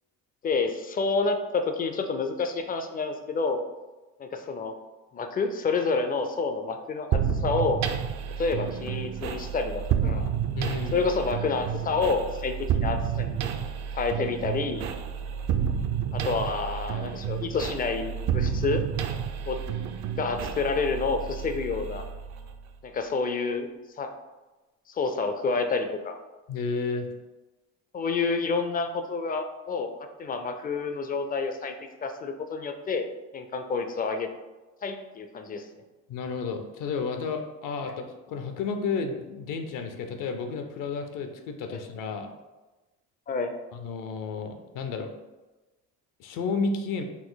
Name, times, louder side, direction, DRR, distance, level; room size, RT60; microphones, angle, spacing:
voice 1, 0.4-3.6 4.2-4.7 5.1-7.8 8.4-10.3 10.9-13.4 13.9-14.9 16.1-18.8 19.5-19.6 20.2-22.0 22.8-23.7 24.0-24.1 24.9-26.2 27.9-29.9 30.2-31.7 32.0-33.1 33.3-34.3 34.8-35.7 41.7-41.8 43.3-43.5, left 4 dB, 25° left, 7 dB, 0.4 m, -28 dB
sound 1, 7.1-22.7, right 8 dB, 55° right, 0.5 m, -30 dB
voice 2, 10.6-11.0 26.5-27.1 36.1-42.3 43.7-45.1 46.2-47.1, left 4 dB, 70° left, 6 dB, 0.7 m, -32 dB
4.2 x 2.6 x 3.9 m, 1.1 s
cardioid pair, 115°, 33 cm